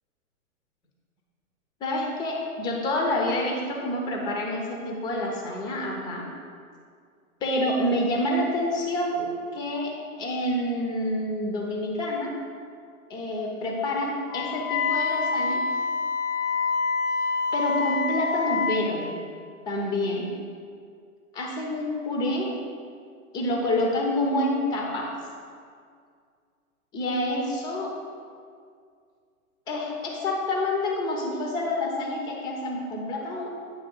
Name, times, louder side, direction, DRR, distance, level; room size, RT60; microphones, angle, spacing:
voice 1, 1.8-6.3 7.4-9.9 10.2-12.3 13.1-15.6 17.5-19.2 19.7-20.3 21.3-22.5 23.3-25.1 26.9-27.9 29.7-33.5, left 1 dB, 10° left, 0 dB, 0.5 m, -27 dB
Wind instrument woodwind instrument, 14.3-18.8, left 4 dB, 85° left, 0.9 m, -26 dB
8.8 x 3.2 x 5.2 m, 2.2 s
hypercardioid pair, 130°, 43 cm